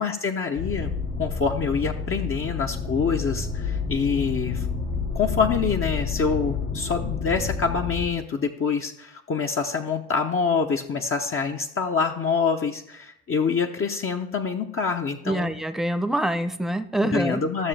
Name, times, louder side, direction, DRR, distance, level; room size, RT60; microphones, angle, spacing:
voice 1, 0.0-4.7 5.1-15.5 17.0-17.7, left 5 dB, 40° left, 2 dB, 0.9 m, -26 dB
sound 1, 0.6-8.0, left 5 dB, 80° left, 2.4 m, -29 dB
voice 2, 15.3-17.4, right 1 dB, ahead, 10 dB, 0.8 m, -25 dB
12.5 x 6.8 x 3.4 m, 0.74 s
hypercardioid pair, 55°, 33 cm